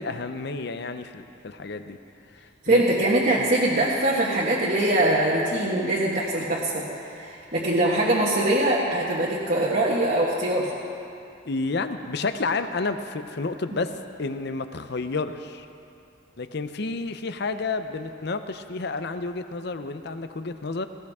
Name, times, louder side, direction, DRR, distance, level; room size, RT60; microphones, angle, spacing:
voice 1, 0.0-2.0 2.3-2.8 3.4-3.5 11.4-13.9 14.2-15.7 16.4-20.9, left 3 dB, 55° left, 9 dB, 0.7 m, -30 dB
voice 2, 2.6-10.7, right 1 dB, 45° right, -5 dB, 1.6 m, -23 dB
18.0 x 17.0 x 3.6 m, 2.6 s
head